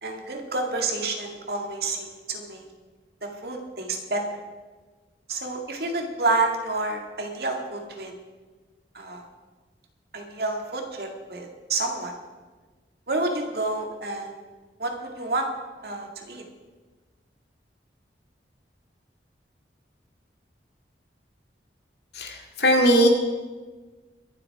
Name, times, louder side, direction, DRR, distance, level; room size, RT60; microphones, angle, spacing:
voice 1, 0.0-2.7 3.2-4.2 5.3-8.1 8.9-9.3 10.1-12.2 13.1-14.3 14.8-15.5 15.8-16.4, right 3 dB, 60° right, 2 dB, 2.1 m, -29 dB
voice 2, 22.1-23.1, equal, 65° left, 2 dB, 2.4 m, -19 dB
23.0 x 7.7 x 4.8 m, 1.3 s
head